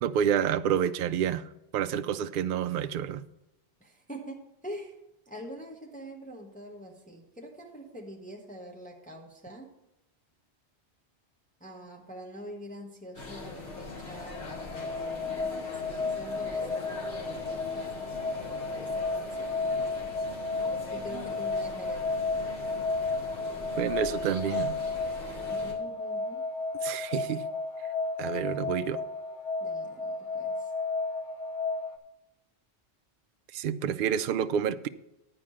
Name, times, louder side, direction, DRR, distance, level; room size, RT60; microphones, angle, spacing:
voice 1, 0.0-3.3 23.8-24.8 26.8-27.4 28.2-29.0 33.5-34.9, right 8 dB, 60° right, 0.6 m, -29 dB
voice 2, 3.8-5.0 5.3-9.7 11.6-22.6 25.5-26.4 29.6-30.7, equal, 10° left, 1.0 m, -45 dB
sound 1, 13.1-25.7, left 2 dB, 70° left, 2.5 m, -42 dB
sound 2, 13.8-32.0, left 3 dB, 90° left, 1.1 m, -33 dB
10.5 x 4.8 x 7.5 m
omnidirectional pair, 1.1 m